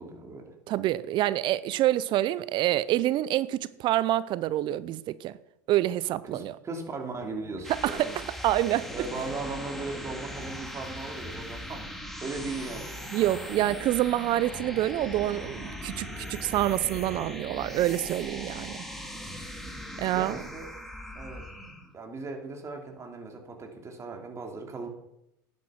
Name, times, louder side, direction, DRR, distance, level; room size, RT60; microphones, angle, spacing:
voice 1, 0.0-0.5 6.2-8.2 8.9-11.8 12.2-13.0 19.1-19.5 20.1-20.7 21.1-21.4 21.9-24.9, right 3 dB, 25° right, 3.2 m, -38 dB
voice 2, 0.7-5.4 5.7-6.5 7.8-8.1 8.4-8.9 13.1-18.8 20.0-20.4, right 14 dB, 50° right, 0.6 m, -27 dB
sound 1, 7.4-21.9, equal, ahead, 2.6 m, -39 dB
11.5 x 9.7 x 5.9 m
hypercardioid pair, 85°, 11 cm